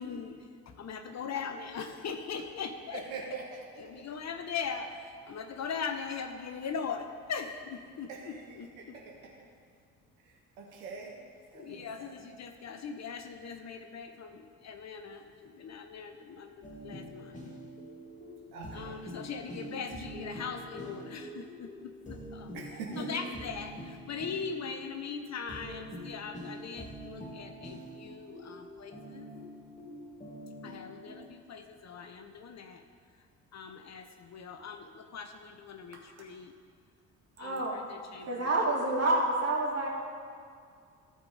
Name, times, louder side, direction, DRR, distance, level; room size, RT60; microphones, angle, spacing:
voice 1, 0.0-3.4 3.8-9.0 11.5-17.4 18.7-22.5 23.0-29.3 30.6-32.8 33.5-36.5 37.4-38.5, left 6 dB, 40° left, 6 dB, 0.8 m, -40 dB
voice 2, 2.9-3.4 8.1-8.4 9.0-9.1 10.6-11.1 11.5-12.1 18.5-19.0 22.5-23.1, right 5 dB, 75° right, -1 dB, 1.3 m, -42 dB
sound 1, 16.6-31.3, equal, 15° left, 2.3 m, -45 dB
voice 3, 37.4-37.8 38.3-39.9, right 2 dB, 35° right, -4 dB, 2.9 m, -28 dB
14.5 x 5.0 x 5.1 m, 2.2 s
figure-of-eight pair, 45°, 42 cm